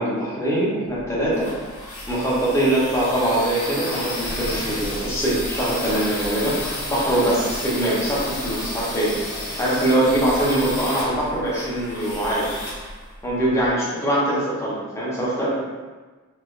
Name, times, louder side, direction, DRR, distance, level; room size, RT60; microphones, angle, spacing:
voice 1, 0.0-1.5 2.1-6.6 6.9-9.2 9.6-12.5 13.2-15.5, right 1 dB, 15° left, -7 dB, 0.7 m, -22 dB
sound 1, 0.9-13.7, left 1 dB, 75° left, 1.0 m, -32 dB
3.2 x 2.8 x 2.4 m, 1.3 s
head